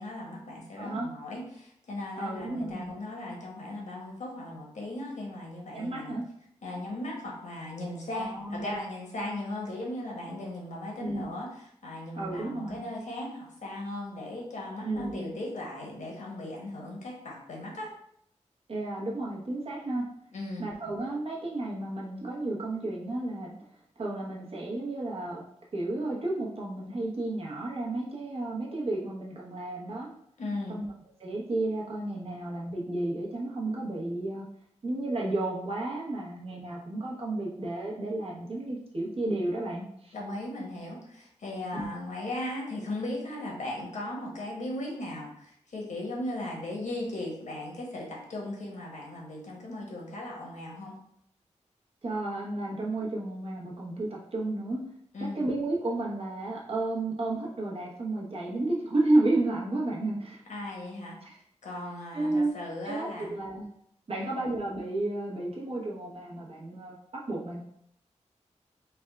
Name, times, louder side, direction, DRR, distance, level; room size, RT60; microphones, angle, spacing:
voice 1, 0.0-6.2 6.6-11.5 11.8-17.9 20.3-20.7 30.4-30.8 40.1-51.0 55.1-55.4 60.5-61.2 61.6-63.3 64.2-64.4, left 1 dB, 80° left, -2 dB, 1.0 m, -37 dB
voice 2, 0.8-1.1 2.2-2.9 5.7-6.2 8.1-8.8 11.0-11.3 12.1-12.8 14.8-15.4 18.7-20.0 20.6-23.5 24.0-25.4 25.7-30.1 30.7-30.9 31.2-34.5 34.8-40.2 41.7-41.8 52.0-54.8 55.3-60.4 61.2-61.4 62.1-62.5 62.8-63.6 64.1-67.6, right 2 dB, 50° right, -4 dB, 0.9 m, -32 dB
3.4 x 2.2 x 3.4 m, 0.70 s
wide cardioid pair, 115°, 12 cm